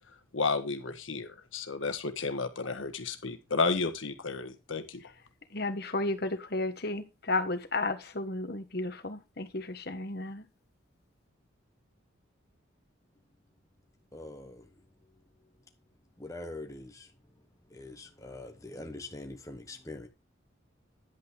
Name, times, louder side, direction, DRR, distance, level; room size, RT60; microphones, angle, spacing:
voice 1, 0.3-5.0, left 4 dB, 80° left, 1.6 m, -32 dB
voice 2, 5.5-10.4, left 2 dB, 50° left, 1.4 m, -33 dB
voice 3, 14.1-14.7 16.2-17.1 17.7-20.1, left 2 dB, 15° left, 1.2 m, -43 dB
10.5 x 8.5 x 3.4 m
head